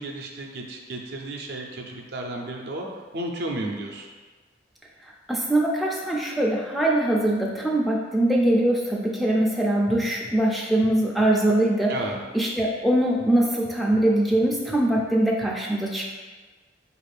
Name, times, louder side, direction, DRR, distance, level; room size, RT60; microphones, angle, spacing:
voice 1, 0.0-2.9 3.1-4.1 11.9-12.1, right 1 dB, 60° right, 1 dB, 0.5 m, -33 dB
voice 2, 5.0-12.0 12.3-16.1, right 1 dB, ahead, -2 dB, 0.3 m, -22 dB
4.6 x 2.4 x 3.3 m, 1.4 s
head